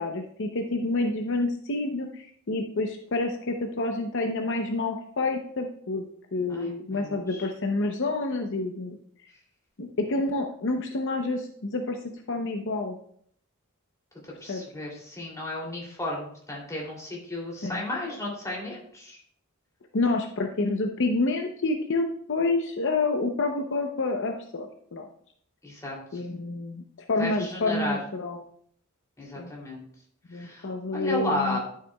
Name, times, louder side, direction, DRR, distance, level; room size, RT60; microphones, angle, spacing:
voice 1, 0.0-6.0 6.3-9.0 9.8-12.0 12.3-13.0 14.5-14.6 17.6-17.8 19.9-25.1 26.1-28.4 29.4-29.5 30.3-31.6, left 2 dB, 60° left, 3 dB, 0.7 m, -28 dB
voice 2, 6.5-7.4 14.4-19.2 25.6-26.2 27.2-28.0 29.2-29.8 30.3-31.6, left 1 dB, 15° left, -3 dB, 2.8 m, -34 dB
11.5 x 6.7 x 2.3 m, 0.63 s
head